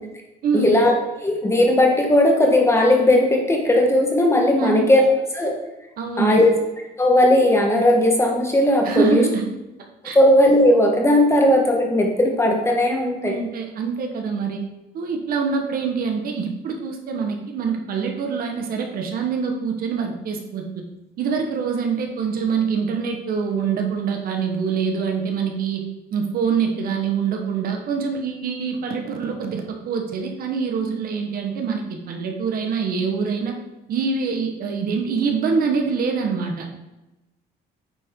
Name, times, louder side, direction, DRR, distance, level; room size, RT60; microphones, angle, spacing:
voice 1, 0.5-0.9 1.2-5.0 5.3-5.5 6.2-6.5 7.0-9.2 10.1-13.3, left 1 dB, 15° left, 1 dB, 1.4 m, -17 dB
voice 2, 6.0-6.4 8.8-9.5 10.0-10.2 13.2-14.6 14.9-20.8 21.2-25.8 26.1-33.6 33.9-36.7, right 5 dB, 60° right, 3 dB, 1.2 m, -25 dB
8.9 x 4.4 x 3.7 m, 1.0 s
cardioid pair, 110°, 17 cm